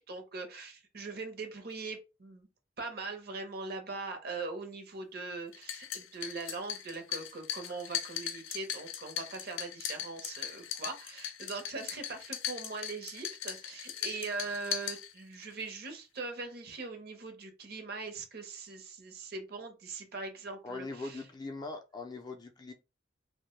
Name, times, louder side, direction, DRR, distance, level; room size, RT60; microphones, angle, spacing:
voice 1, 0.0-2.5 2.8-21.2, right 3 dB, 50° right, 0.7 m, -41 dB
sound 1, 5.5-15.5, left 10 dB, 85° left, 0.4 m, -39 dB
voice 2, 20.6-22.7, left 3 dB, 20° left, 0.4 m, -41 dB
2.6 x 2.1 x 3.0 m
head